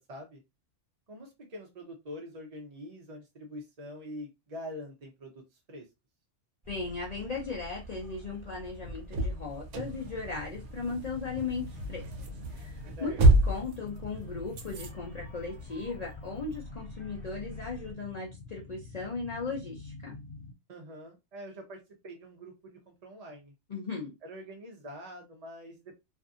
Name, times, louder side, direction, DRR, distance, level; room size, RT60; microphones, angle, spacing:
voice 1, 0.1-0.4 1.1-5.4 5.7-5.9 13.0-13.2 20.7-23.5 24.2-26.0, equal, 45° right, 1 dB, 0.5 m, -45 dB
sound 1, 6.6-17.9, right 1 dB, 10° right, 0.9 m, -49 dB
voice 2, 6.7-12.0 12.5-20.2 23.7-24.1, left 4 dB, 50° left, -3 dB, 0.5 m, -37 dB
sound 2, 7.8-14.9, right 1 dB, 90° right, 0.9 m, -29 dB
sound 3, 9.8-20.5, left 3 dB, 80° left, 0.9 m, -47 dB
2.6 x 2.5 x 2.4 m, 0.23 s
omnidirectional pair, 1.2 m